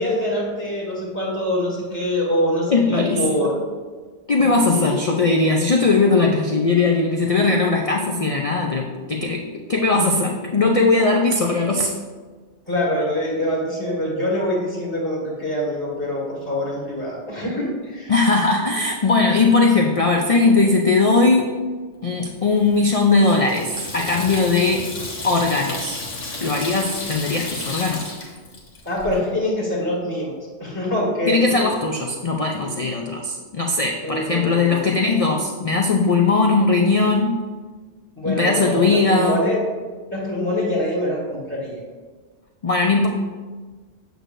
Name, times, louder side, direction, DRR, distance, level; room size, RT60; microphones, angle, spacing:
voice 1, 0.0-3.5 4.8-4.9 12.7-18.1 28.8-31.6 32.6-32.7 34.0-35.0 38.2-39.6 40.1-41.8, left 1 dB, 15° left, -7 dB, 1.6 m, -24 dB
voice 2, 2.7-3.5 4.3-9.4 9.7-11.9 18.1-21.6 22.0-24.8 25.2-26.0 26.4-28.1 31.3-37.4 38.3-39.4 42.6-43.1, left 3 dB, 50° left, 1 dB, 0.4 m, -19 dB
Water tap faucet / Sink (filling or washing), 22.4-29.2, left 2 dB, 80° left, 1.6 m, -33 dB
7.8 x 6.4 x 2.6 m, 1.4 s
omnidirectional pair, 1.2 m